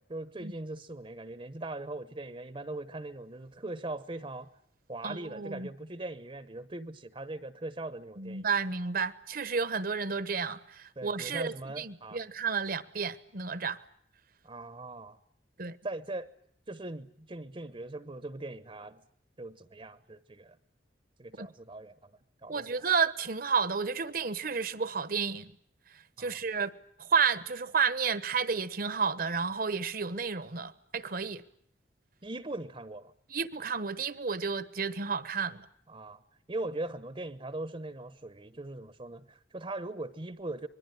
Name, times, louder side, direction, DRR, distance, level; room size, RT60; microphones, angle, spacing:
voice 1, 0.0-4.5 4.9-8.5 11.0-12.2 14.4-15.2 15.8-16.3 16.7-19.0 19.4-20.6 21.2-22.1 22.4-22.8 26.2-26.4 32.2-33.1 35.9-36.2 36.5-40.7, right 2 dB, 30° right, 1.0 m, -40 dB
voice 2, 5.0-5.7 8.2-13.8 15.6-15.8 21.4-21.5 22.5-25.5 26.2-26.7 27.0-31.4 33.3-35.7, right 5 dB, 55° right, 1.2 m, -31 dB
25.5 x 21.5 x 9.4 m
head